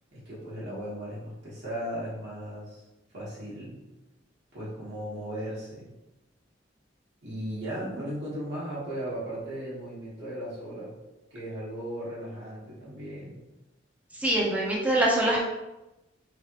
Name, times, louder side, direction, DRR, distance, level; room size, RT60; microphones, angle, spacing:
voice 1, 0.1-2.8 3.1-3.8 4.5-5.9 7.2-10.9 11.3-13.4, equal, 60° right, -9 dB, 1.3 m, -36 dB
voice 2, 14.2-15.4, right 1 dB, 10° right, -4 dB, 0.7 m, -24 dB
3.4 x 3.2 x 2.9 m, 0.99 s
head